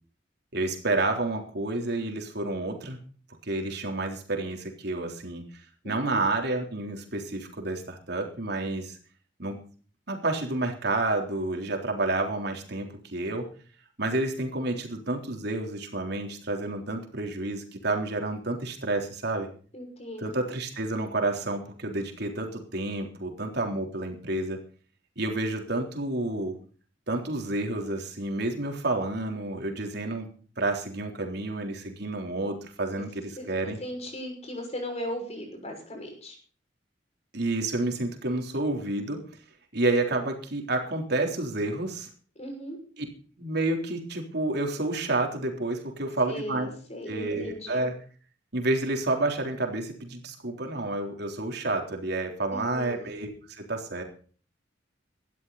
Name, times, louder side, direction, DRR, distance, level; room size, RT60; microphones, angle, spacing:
voice 1, 0.5-3.0 3.4-5.4 5.8-9.0 9.4-9.6 10.1-13.5 14.0-19.5 20.2-24.6 25.2-26.6 27.1-30.3 30.6-33.8 37.3-39.2 39.7-42.1 43.0-43.1 43.4-46.7 47.1-47.9 48.5-54.0, right 2 dB, 60° right, 3 dB, 3.8 m, -30 dB
voice 2, 5.8-6.2 19.7-20.4 33.4-33.5 33.8-36.4 42.4-42.8 46.3-47.8 52.5-53.1, equal, 35° left, 3 dB, 6.3 m, -37 dB
18.0 x 13.0 x 4.2 m, 0.41 s
head